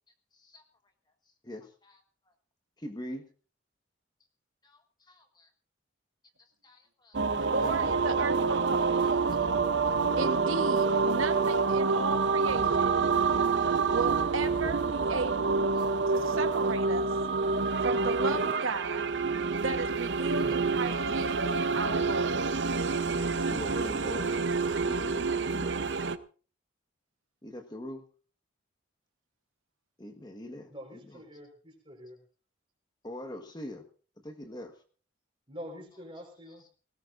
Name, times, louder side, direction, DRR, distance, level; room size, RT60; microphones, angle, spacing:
voice 1, 1.4-2.0 2.8-3.2 4.6-5.5 6.4-7.9 8.9-9.0 9.3-9.5 15.1-15.4 15.7-15.8 16.9-17.2 18.6-18.7 19.0-19.2 21.1-21.2 21.5-21.6 23.3-24.3 24.8-25.9 27.4-28.0 30.0-31.2 33.0-33.9 34.2-34.7 36.5-36.7, left 1 dB, 20° left, 4 dB, 1.4 m, -44 dB
sound 1, 7.1-26.2, right 4 dB, 60° right, 0.8 m, -27 dB
voice 2, 7.5-8.9 10.2-13.0 13.9-15.7 16.1-17.1 17.8-19.1 19.6-21.5 21.7-22.4, right 3 dB, 90° right, 8 dB, 1.3 m, -35 dB
voice 3, 30.7-32.2 35.5-36.6, equal, 25° right, 3 dB, 4.6 m, -45 dB
19.5 x 18.5 x 2.6 m, 0.38 s
head